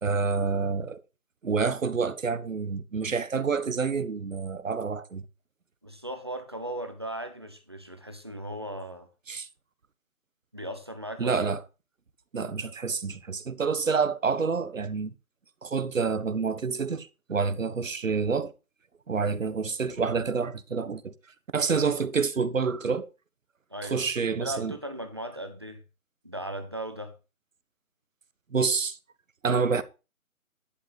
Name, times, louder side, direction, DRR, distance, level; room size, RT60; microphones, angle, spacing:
voice 1, 0.0-1.0 1.4-5.2 9.3-9.5 11.2-11.6 12.3-15.1 15.6-18.5 19.1-21.1 21.5-23.1 23.8-24.7 28.5-29.0 29.4-29.8, right 5 dB, 60° right, 1.4 m, -28 dB
voice 2, 5.8-9.1 10.5-11.5 23.7-24.1 24.4-25.8 26.2-27.2, right 1 dB, 20° right, 0.9 m, -37 dB
11.5 x 8.0 x 4.8 m
hypercardioid pair, 180°, 43 cm